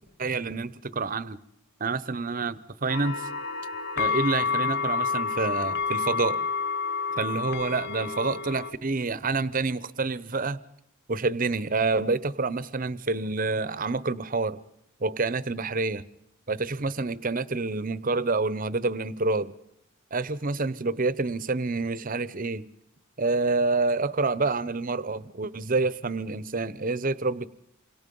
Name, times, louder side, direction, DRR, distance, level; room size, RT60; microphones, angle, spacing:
voice 1, 0.2-1.4 1.8-3.3 4.0-6.5 7.2-10.6 11.1-14.6 15.0-16.0 16.5-19.5 20.1-22.6 23.2-27.5, right 3 dB, 40° right, 0.8 m, -28 dB
sound 1, 2.9-8.7, left 5 dB, 50° left, 0.9 m, -29 dB
28.5 x 24.5 x 5.5 m
head